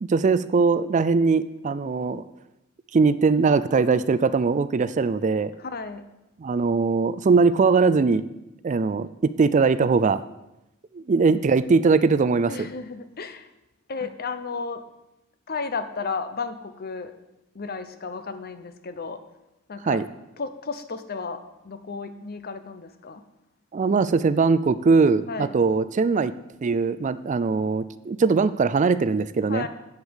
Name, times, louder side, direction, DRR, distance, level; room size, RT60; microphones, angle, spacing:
voice 1, 0.0-2.3 2.9-5.5 6.4-8.2 8.6-10.2 10.9-12.7 19.8-20.1 23.7-26.3 26.6-29.7, right 4 dB, 35° right, 14 dB, 0.4 m, -21 dB
voice 2, 5.6-6.0 12.5-13.5 13.9-14.8 15.5-17.1 17.5-19.2 19.7-20.0 20.4-23.2 25.3-25.5 29.5-29.7, left 4 dB, 50° left, 11 dB, 0.8 m, -33 dB
8.2 x 8.0 x 7.1 m, 0.93 s
head